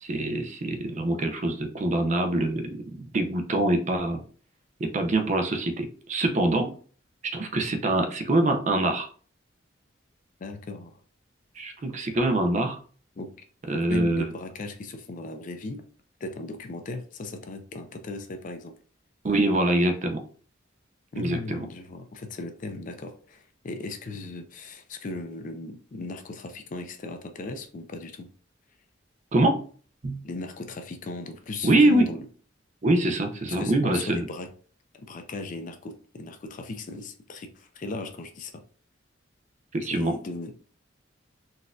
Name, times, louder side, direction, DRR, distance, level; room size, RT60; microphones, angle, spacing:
voice 1, 0.0-4.2 4.8-6.7 7.3-9.1 11.6-12.8 13.7-14.2 19.2-20.2 21.2-21.6 29.3-29.7 30.0-30.2 31.6-32.1 32.8-34.2 39.7-40.1, right 1 dB, 35° right, 0.5 m, -24 dB
voice 2, 10.4-11.0 13.2-13.3 13.7-15.9 16.2-18.7 21.1-28.3 30.2-32.3 33.5-34.5 34.9-38.6 39.9-40.5, left 2 dB, 40° left, 0.4 m, -37 dB
4.0 x 2.5 x 2.3 m
head